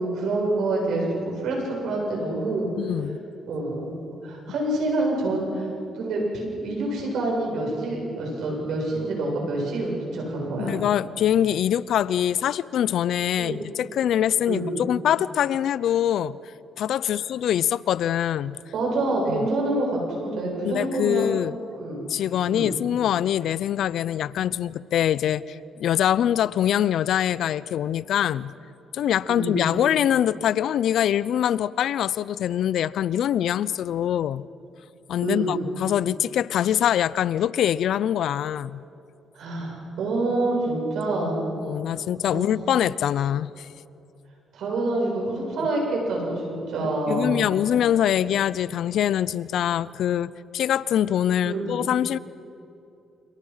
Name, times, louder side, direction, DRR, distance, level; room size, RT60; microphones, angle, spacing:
voice 1, 0.0-2.7 3.5-4.0 4.2-5.7 6.0-10.7 13.4-13.6 14.5-14.7 18.7-21.3 21.7-22.1 22.4-22.7 29.3-29.5 35.2-35.6 39.3-41.4 42.3-42.5 44.5-47.4 51.4-51.7, right 2 dB, 75° right, -1 dB, 7.8 m, -27 dB
voice 2, 2.8-3.2 10.6-16.4 16.8-18.6 19.3-19.5 20.6-21.6 22.1-28.5 28.9-34.4 35.1-38.8 41.6-43.7 47.1-52.2, left 10 dB, 75° left, 19 dB, 0.6 m, -24 dB
29.0 x 27.5 x 5.8 m, 2.8 s
cardioid pair, 90°, 0 cm